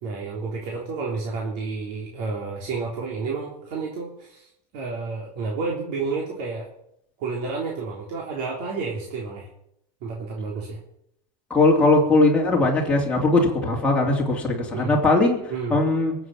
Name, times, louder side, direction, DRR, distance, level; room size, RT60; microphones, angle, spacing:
voice 1, 0.0-6.7 7.2-9.5 10.0-10.8 14.7-14.9 15.5-15.8, right 4 dB, 50° right, -2 dB, 3.6 m, -30 dB
voice 2, 11.5-15.4 15.7-16.1, left 2 dB, 5° left, -3 dB, 3.0 m, -19 dB
21.5 x 8.0 x 7.4 m, 0.76 s
supercardioid pair, 140°, 21 cm